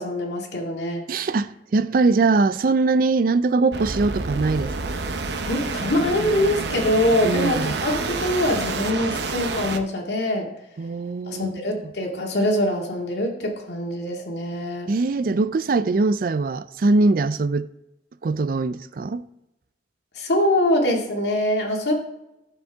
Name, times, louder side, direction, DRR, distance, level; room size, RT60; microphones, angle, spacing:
voice 1, 0.0-1.0 5.5-10.5 11.3-14.9 20.2-21.9, left 1 dB, 75° left, 2.1 m, -23 dB
voice 2, 1.1-4.9 7.2-7.8 10.8-11.6 14.9-17.7 18.2-19.2, right 3 dB, 55° right, 0.4 m, -22 dB
sound 1, 3.7-9.8, right 3 dB, 75° right, 0.8 m, -28 dB
13.0 x 7.2 x 3.5 m
head